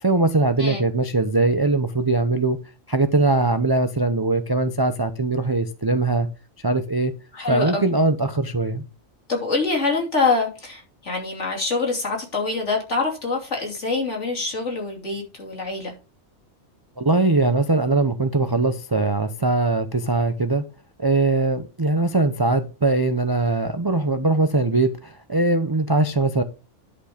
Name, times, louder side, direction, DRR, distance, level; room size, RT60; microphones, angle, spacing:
voice 1, 0.0-2.6 2.9-6.3 6.6-7.1 7.5-8.8 17.0-20.6 21.0-26.4, right 2 dB, 25° right, 0.5 m, -21 dB
voice 2, 7.3-7.8 9.3-15.9, left 3 dB, 60° left, 3.1 m, -25 dB
10.5 x 5.4 x 5.0 m
omnidirectional pair, 1.4 m